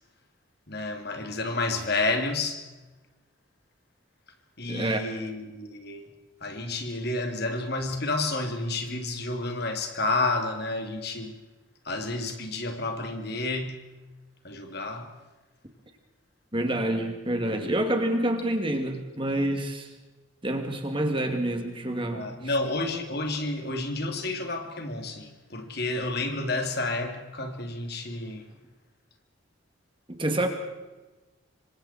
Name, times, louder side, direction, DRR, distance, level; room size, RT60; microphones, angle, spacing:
voice 1, 0.7-2.6 4.6-6.1 6.4-11.4 11.8-13.8 14.4-15.1 22.1-28.5, left 2 dB, 50° left, 5 dB, 2.8 m, -30 dB
voice 2, 4.7-5.0 16.5-19.9 20.4-22.3 30.1-30.5, right 1 dB, 25° right, 4 dB, 2.6 m, -27 dB
27.5 x 25.0 x 4.4 m, 1.2 s
head